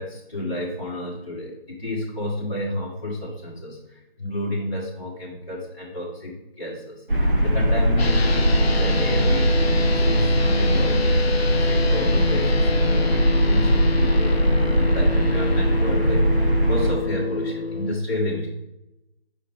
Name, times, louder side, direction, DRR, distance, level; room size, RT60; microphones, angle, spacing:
voice 1, 0.0-18.5, left 1 dB, 30° left, -9 dB, 1.3 m, -31 dB
sound 1, 7.1-16.9, equal, 55° right, 1.4 m, -20 dB
sound 2, 8.0-17.9, left 4 dB, 75° left, 0.5 m, -28 dB
6.9 x 5.6 x 3.5 m, 0.90 s
figure-of-eight pair, 160°, 31 cm